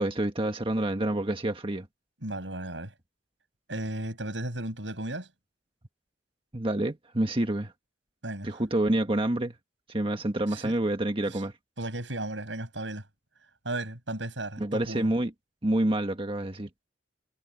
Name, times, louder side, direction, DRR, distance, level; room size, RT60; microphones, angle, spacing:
voice 1, 0.0-1.9 6.5-7.7 8.4-9.6 9.9-11.5 14.6-15.3 15.6-16.7, right 1 dB, 30° right, 1.5 m, -28 dB
voice 2, 2.2-2.9 3.7-5.3 8.2-8.6 10.5-10.8 11.3-11.4 11.8-13.1 13.6-15.1, right 1 dB, 90° right, 7.8 m, -35 dB
head